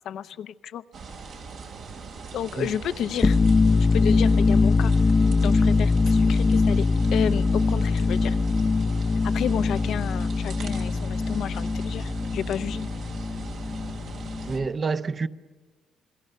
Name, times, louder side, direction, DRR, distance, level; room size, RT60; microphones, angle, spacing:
voice 1, 0.0-0.8 2.3-3.4 3.9-4.9 5.4-6.9 7.1-8.4 9.2-12.9, left 9 dB, 75° left, 0.7 m, -31 dB
sound 1, 0.9-14.6, right 5 dB, 70° right, 3.2 m, -41 dB
sound 2, 3.1-14.7, left 4 dB, 30° left, 0.6 m, -22 dB
voice 2, 14.5-15.3, right 4 dB, 40° right, 0.8 m, -27 dB
27.5 x 21.0 x 6.8 m
cardioid pair, 90°, 0 cm